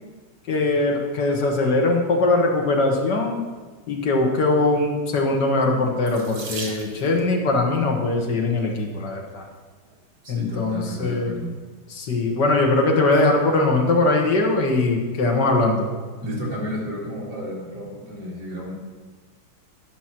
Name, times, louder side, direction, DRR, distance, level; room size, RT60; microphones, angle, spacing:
voice 1, 0.5-3.4 3.9-9.4 10.3-11.3 11.9-15.9, left 2 dB, 55° left, 1 dB, 1.9 m, -21 dB
Water tap faucet / Sink (filling or washing), 6.1-7.3 8.3-8.7 9.4-9.5 9.8-10.0, right 3 dB, 85° right, 2.6 m, -37 dB
voice 2, 10.2-11.5 16.2-18.7, equal, 50° right, -4 dB, 3.0 m, -32 dB
11.5 x 6.1 x 6.0 m, 1.4 s
omnidirectional pair, 2.3 m